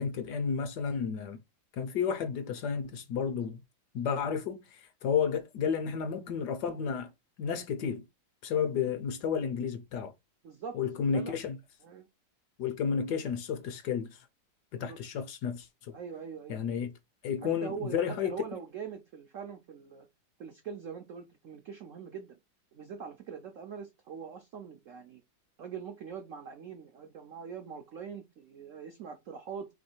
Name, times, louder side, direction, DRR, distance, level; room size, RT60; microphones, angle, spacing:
voice 1, 0.0-1.4 1.7-3.6 3.9-7.1 7.4-8.0 8.4-10.1 10.7-11.6 12.6-14.2 14.7-15.9 16.5-16.9 17.2-18.4, left 6 dB, 70° left, 1.0 m, -32 dB
voice 2, 10.4-10.8 11.1-11.4 11.8-12.1 14.7-15.0 15.9-16.6 17.4-20.1 20.4-22.4 22.7-25.2 25.6-29.7, right 7 dB, 90° right, 0.6 m, -43 dB
3.2 x 3.1 x 4.3 m
omnidirectional pair, 2.1 m